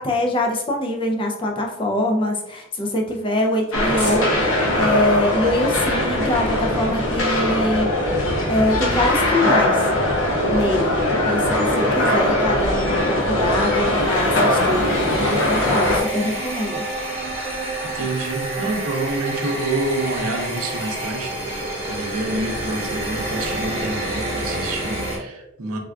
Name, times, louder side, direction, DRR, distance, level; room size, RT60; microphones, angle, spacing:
voice 1, 0.0-4.3 4.5-7.9 8.5-10.9 11.3-16.8, left 1 dB, 25° left, 1 dB, 0.4 m, -24 dB
sound 1, 3.1-7.3, equal, 5° left, 0.9 m, -40 dB
sound 2, 3.7-16.0, left 1 dB, 65° left, 0.7 m, -20 dB
sound 3, 13.9-25.2, right 1 dB, 25° right, 0.8 m, -29 dB
voice 2, 17.8-25.8, right 2 dB, 75° right, 3 dB, 0.6 m, -28 dB
3.4 x 2.2 x 2.3 m, 0.88 s
head